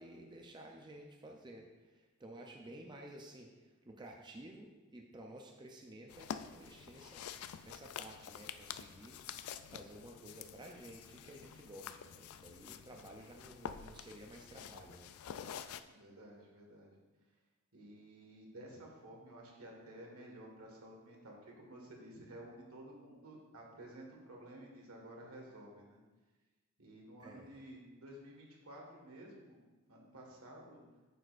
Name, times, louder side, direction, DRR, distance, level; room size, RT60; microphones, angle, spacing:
voice 1, 0.0-9.2 9.7-15.1 27.2-27.6, right 1 dB, 20° right, 1 dB, 0.5 m, -53 dB
sound 1, 6.1-15.8, left 8 dB, 80° left, 0.3 m, -48 dB
voice 2, 15.8-17.0 17.7-26.0 26.8-29.6 29.9-30.8, right 1 dB, 85° right, -1 dB, 1.6 m, -53 dB
9.0 x 6.3 x 2.5 m, 1.2 s
head